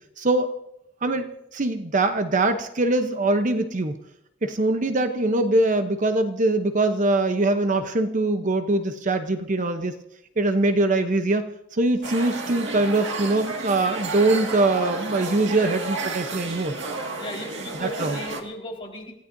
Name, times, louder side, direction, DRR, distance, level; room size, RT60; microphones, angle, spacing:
voice 1, 0.2-0.5 1.0-3.9 4.4-9.9 10.4-16.7 17.8-18.2, right 2 dB, 40° right, 7 dB, 0.8 m, -23 dB
sound 1, 12.0-18.4, right 3 dB, 65° right, 2.0 m, -32 dB
voice 2, 17.2-19.1, left 1 dB, 25° left, -1 dB, 4.2 m, -36 dB
29.0 x 15.5 x 2.7 m, 0.83 s
head